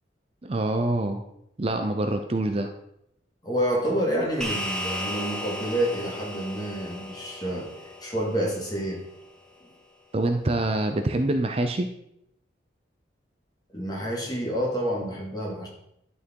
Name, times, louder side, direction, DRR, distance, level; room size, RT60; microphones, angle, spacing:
voice 1, 0.4-1.2 1.6-2.7 10.1-11.9, right 2 dB, 30° right, 6 dB, 0.5 m, -25 dB
voice 2, 3.4-7.7 8.0-9.0 13.7-15.7, equal, 20° left, -3 dB, 2.3 m, -28 dB
sound 1, 4.4-9.1, left 1 dB, 5° left, 1.1 m, -35 dB
11.5 x 4.6 x 4.6 m, 0.79 s
head